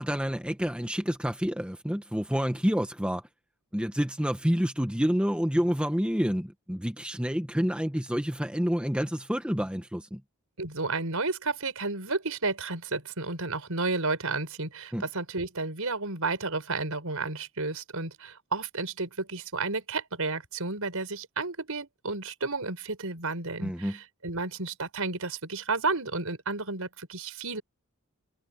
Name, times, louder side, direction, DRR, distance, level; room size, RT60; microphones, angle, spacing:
voice 1, 0.0-3.2 3.7-10.2 14.9-15.0 23.6-24.0, equal, 5° right, 1.2 m, -28 dB
voice 2, 10.6-27.6, right 3 dB, 75° right, 5.5 m, -32 dB
head